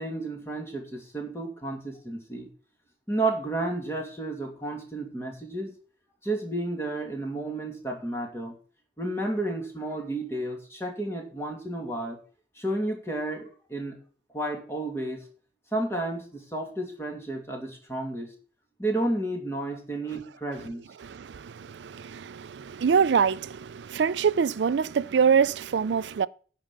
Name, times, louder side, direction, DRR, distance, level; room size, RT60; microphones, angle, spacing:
voice 1, 0.0-2.5 3.1-5.7 6.2-8.5 9.0-12.2 12.6-14.0 14.3-15.2 15.7-18.3 18.8-20.8, right 2 dB, 15° left, 2.6 m, -32 dB
voice 2, 21.0-26.3, right 6 dB, 80° right, 0.4 m, -25 dB
10.5 x 5.2 x 7.4 m
head